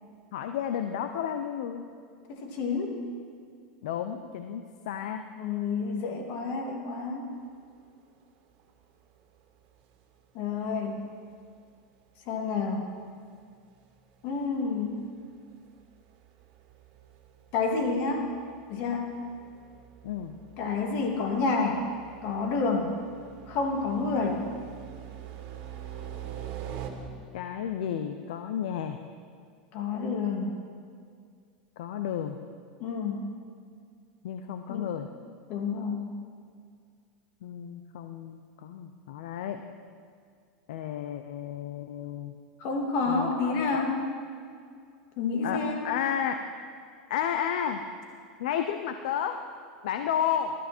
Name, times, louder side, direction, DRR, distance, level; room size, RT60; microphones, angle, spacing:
voice 1, 0.3-1.9 3.8-5.2 20.0-20.4 27.3-29.0 31.8-32.4 34.2-35.1 37.4-39.6 40.7-42.4 43.1-43.8 45.4-46.4 47.1-47.8 48.4-49.4 49.8-50.5, left 9 dB, 75° left, 7 dB, 0.8 m, -32 dB
voice 2, 2.3-3.0 5.4-7.3 10.3-11.0 12.3-12.9 14.2-15.0 17.5-18.3 18.7-19.2 20.6-21.9 22.2-22.9 23.5-24.4 29.7-30.6 32.8-33.2 34.7-34.9 35.5-36.1 42.6-44.1 45.2-45.9, left 4 dB, 55° left, 2 dB, 2.8 m, -29 dB
sound 1, 7.6-7.7 8.6-8.7 9.8-10.0 10.4-10.5 10.9-11.0 11.3-11.4 12.1-12.2 12.4-12.5 13.3-13.4 13.6-26.9, right 10 dB, 55° right, 2.2 m, -45 dB
20.0 x 13.0 x 4.5 m, 2.2 s
supercardioid pair, 115°, 4 cm